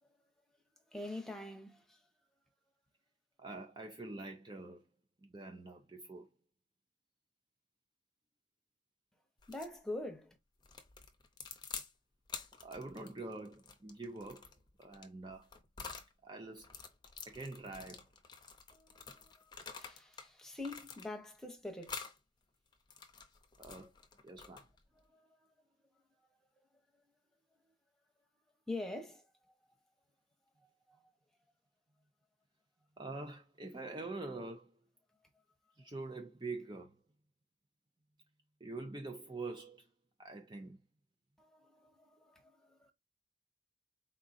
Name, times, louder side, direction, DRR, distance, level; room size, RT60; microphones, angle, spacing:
voice 1, 0.9-2.1 9.5-10.4 18.7-22.0 25.0-25.5 28.7-29.3 30.9-31.0 41.4-42.9, left 2 dB, 5° left, 0.9 m, -45 dB
voice 2, 3.4-4.8 5.2-6.3 12.6-14.5 14.8-15.5 16.2-16.7 17.3-18.1 23.6-23.9 24.2-24.7 33.0-34.8 35.8-36.9 38.6-39.9 40.2-40.8, right 3 dB, 25° right, 0.5 m, -45 dB
sound 1, 9.4-9.8 10.6-11.9 12.3-16.1 16.6-20.3 20.6-21.4 21.8-22.2 22.7-24.8, left 6 dB, 25° left, 0.7 m, -49 dB
4.6 x 3.8 x 2.6 m
head